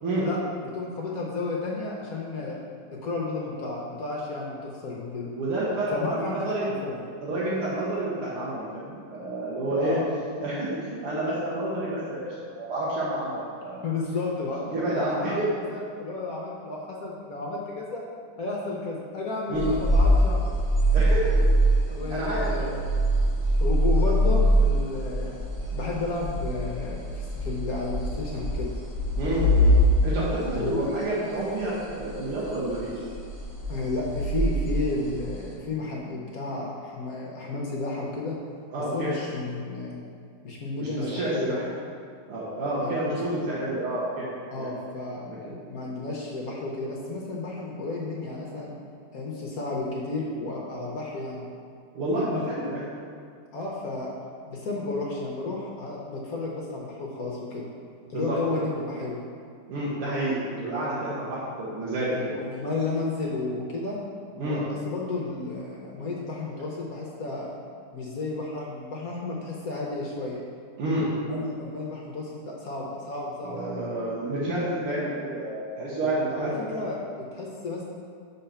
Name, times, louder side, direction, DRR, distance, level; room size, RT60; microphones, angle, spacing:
voice 1, 0.6-2.6 2.9-5.3 5.9-7.0 9.7-10.0 13.8-14.6 14.9-18.0 18.4-20.6 21.8-22.8 23.6-25.4 25.7-28.7 30.5-30.9 33.7-38.4 38.9-40.0 40.4-41.6 42.8-43.2 44.5-45.3 45.7-48.7 49.1-51.4 52.1-52.5 53.5-54.1 54.4-57.6 58.1-59.2 62.1-64.0 64.3-67.5 67.9-70.4 71.2-73.8 76.3-77.8, left 3 dB, 60° left, -3 dB, 1.0 m, -32 dB
voice 2, 5.3-6.7 7.2-10.0 10.4-13.8 14.7-15.5 19.5-19.7 20.9-21.5 22.1-22.7 29.2-29.8 30.0-32.9 38.7-39.1 40.8-41.6 42.3-44.3 44.6-44.7 45.3-45.5 52.0-52.9 58.1-58.7 59.7-62.4 64.4-64.6 70.8-71.1 73.4-76.7, right 1 dB, 85° right, -8 dB, 2.0 m, -29 dB
sound 1, 19.5-31.0 31.3-31.5 31.8-32.8 33.1-35.4, equal, 20° right, 0.8 m, -24 dB
6.7 x 4.0 x 5.6 m, 2.2 s
omnidirectional pair, 2.3 m